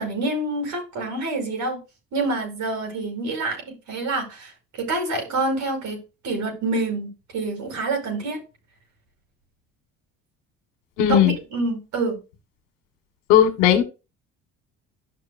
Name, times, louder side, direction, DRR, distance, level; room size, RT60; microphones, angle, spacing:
voice 1, 0.0-1.8 2.1-6.0 6.2-8.4 11.1-12.2, right 2 dB, 60° right, 5.6 m, -27 dB
voice 2, 11.0-11.4 13.3-13.8, left 10 dB, 80° left, 1.6 m, -16 dB
12.0 x 6.1 x 2.6 m
supercardioid pair, 75°, 33 cm